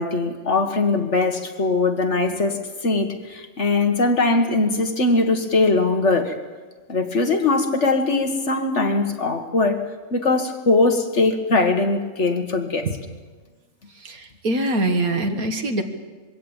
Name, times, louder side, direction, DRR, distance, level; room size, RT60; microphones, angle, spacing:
voice 1, 0.0-6.4 6.9-9.8 10.1-12.9, left 3 dB, 50° left, 5 dB, 1.9 m, -21 dB
voice 2, 14.0-15.8, right 2 dB, 70° right, 6 dB, 2.0 m, -23 dB
22.5 x 16.5 x 8.9 m, 1.4 s
omnidirectional pair, 1.6 m